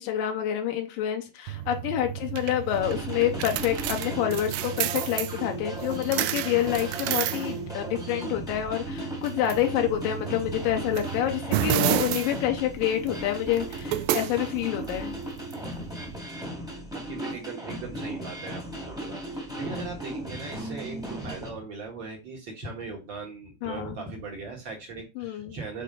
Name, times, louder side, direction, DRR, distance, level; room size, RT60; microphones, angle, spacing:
voice 1, 0.0-15.2 23.6-23.9 25.2-25.6, left 11 dB, 85° left, 4 dB, 2.5 m, -28 dB
sound 1, 1.5-16.2, right 13 dB, 90° right, 2.4 m, -32 dB
sound 2, 2.7-21.5, equal, 5° right, 0.8 m, -37 dB
voice 2, 16.9-25.8, right 4 dB, 60° right, 1 dB, 1.3 m, -39 dB
6.9 x 4.2 x 3.8 m, 0.28 s
omnidirectional pair, 4.0 m